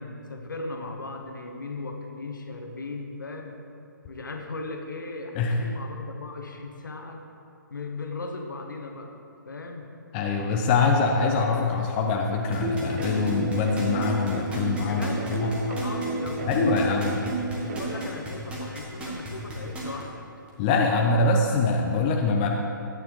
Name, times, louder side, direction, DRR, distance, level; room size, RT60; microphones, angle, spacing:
voice 1, 0.0-3.6 4.1-7.3 7.7-9.2 9.4-9.9 14.9-20.3, left 3 dB, 65° left, 3 dB, 1.2 m, -37 dB
voice 2, 10.1-15.5 16.5-17.1 20.6-22.5, left 4 dB, 25° left, 1 dB, 0.6 m, -24 dB
sound 1, 12.5-20.0 20.5-20.6, right 2 dB, 10° right, 1.5 m, -36 dB
sound 2, 12.6-18.1, right 2 dB, 40° right, 0.9 m, -31 dB
12.0 x 9.0 x 3.2 m, 2.5 s
figure-of-eight pair, 130°, 11 cm